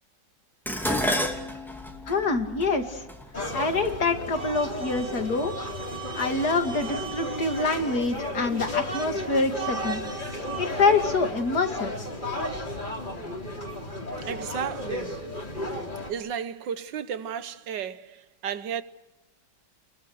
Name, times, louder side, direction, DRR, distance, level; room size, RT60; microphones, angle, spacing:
Dishes pots and pans, 0.7-5.0 5.9-6.3 6.7-7.5 7.8-7.9, equal, ahead, 2.7 m, -32 dB
voice 1, 2.1-3.1 3.5-5.5 6.1-10.0 10.6-11.9, left 3 dB, 55° left, 3.0 m, -26 dB
sound 1, 3.3-16.1, left 1 dB, 25° left, 3.5 m, -33 dB
voice 2, 14.3-15.2 16.1-18.8, right 8 dB, 75° right, 1.7 m, -33 dB
30.0 x 22.5 x 6.4 m
omnidirectional pair, 2.0 m